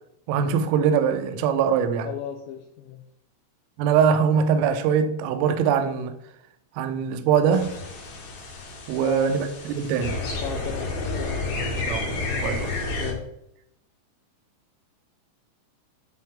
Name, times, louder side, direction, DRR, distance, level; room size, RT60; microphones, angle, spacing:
voice 1, 0.3-2.1 3.8-6.1 6.8-7.7 8.9-10.2 11.8-12.1 12.4-12.7, right 7 dB, 85° right, 3.3 m, -22 dB
voice 2, 2.0-3.0 9.0-9.3 10.4-11.7 12.1-12.3 13.0-13.3, left 9 dB, 85° left, 2.6 m, -35 dB
sound 1, 7.5-13.1, left 2 dB, 60° left, 2.6 m, -31 dB
10.5 x 4.1 x 3.6 m
omnidirectional pair, 5.8 m